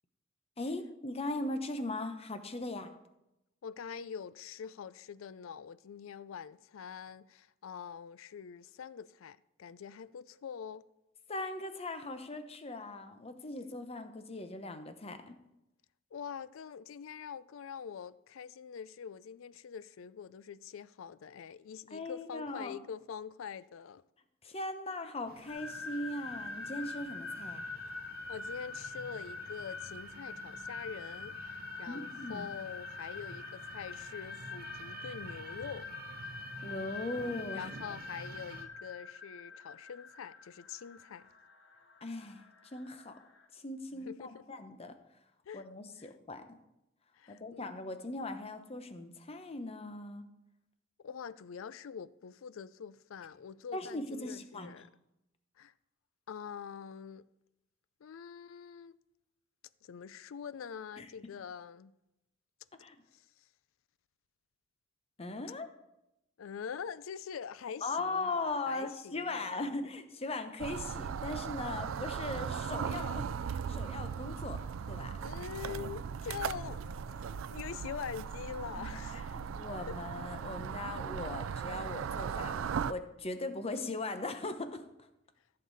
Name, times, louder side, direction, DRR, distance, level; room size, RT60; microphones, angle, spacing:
voice 1, 0.6-2.9 11.3-15.4 21.9-22.7 24.4-27.7 31.9-32.5 36.6-37.7 42.0-43.2 43.5-45.0 45.5-46.5 47.3-50.2 53.7-54.7 61.0-61.1 62.8-63.0 65.2-65.7 67.8-74.6 74.9-75.1 78.8-84.9, left 2 dB, 30° left, 0.9 m, -39 dB
voice 2, 3.6-10.9 16.1-24.0 28.3-35.9 37.5-41.3 43.9-44.4 45.5-45.6 46.0-46.1 47.1-47.7 51.0-54.9 55.6-55.7 56.3-57.3 58.0-58.9 59.8-61.9 63.1-63.2 66.4-69.7 75.2-79.3 79.9-80.0, left 7 dB, 80° left, 0.4 m, -44 dB
sound 1, 25.3-38.6, right 3 dB, 50° right, 0.8 m, -50 dB
sound 2, 25.5-43.4, left 4 dB, 60° left, 1.2 m, -45 dB
sound 3, 70.6-82.9, right 7 dB, 75° right, 0.4 m, -38 dB
14.5 x 6.7 x 4.0 m
head